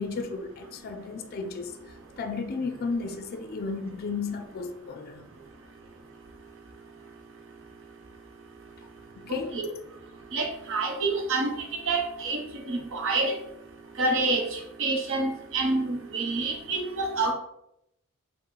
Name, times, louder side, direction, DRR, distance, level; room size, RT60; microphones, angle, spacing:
voice 1, 0.0-1.8 2.2-5.3 9.2-9.6, left 4 dB, 45° left, 0.4 m, -33 dB
voice 2, 9.3-9.7 10.3-11.5 11.9-12.4 12.7-13.3 14.0-17.3, right 3 dB, 65° right, 0.8 m, -27 dB
5.3 x 2.1 x 3.8 m
head